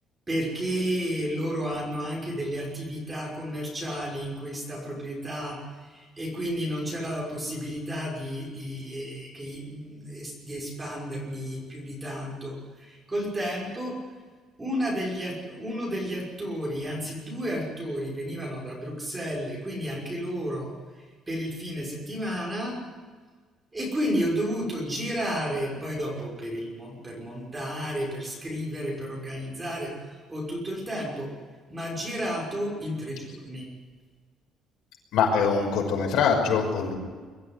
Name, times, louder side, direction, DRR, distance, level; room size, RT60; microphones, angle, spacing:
voice 1, 0.3-14.0 14.6-20.7 21.3-22.8 23.7-29.9 30.3-31.3 31.7-33.7, equal, 10° right, -2 dB, 6.0 m, -32 dB
voice 2, 35.1-36.9, left 6 dB, 75° left, 1 dB, 5.7 m, -23 dB
23.5 x 14.0 x 9.9 m, 1.5 s
cardioid pair, 170°, 0 cm